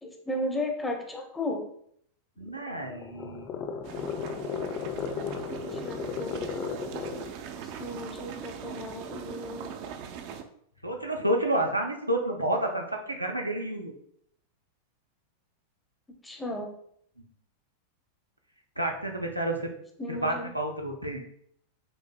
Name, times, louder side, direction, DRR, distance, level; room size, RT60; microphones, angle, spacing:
voice 1, 0.0-1.6 5.7-6.4 7.8-9.7 16.2-16.7 20.0-20.5, left 1 dB, 10° left, 2 dB, 0.7 m, -34 dB
sound 1, 2.4-7.4, left 6 dB, 35° left, 0.4 m, -35 dB
voice 2, 2.4-3.6 10.8-13.9 18.8-19.7 20.1-21.2, right 1 dB, 90° right, 1 dB, 0.6 m, -30 dB
sound 2, 3.8-10.4, right 7 dB, 45° right, 0.4 m, -40 dB
6.2 x 2.6 x 2.2 m, 0.68 s
figure-of-eight pair, 90°, 0 cm